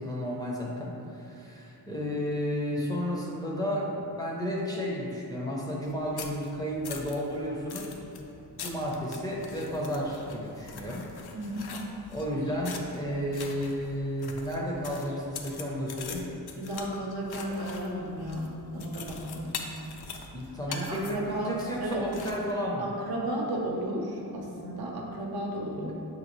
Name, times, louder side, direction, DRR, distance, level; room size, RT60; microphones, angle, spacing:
voice 1, 0.0-8.0 8.5-11.1 12.1-16.3 20.3-22.9, equal, 10° left, -4 dB, 0.5 m, -32 dB
sound 1, 5.8-22.5, left 5 dB, 70° left, 0.5 m, -44 dB
voice 2, 11.3-11.8 16.6-19.6 20.7-21.5 21.8-22.0 22.8-25.9, right 1 dB, 65° right, -2 dB, 0.8 m, -34 dB
5.7 x 2.7 x 3.0 m, 2.8 s
cardioid pair, 85°, 40 cm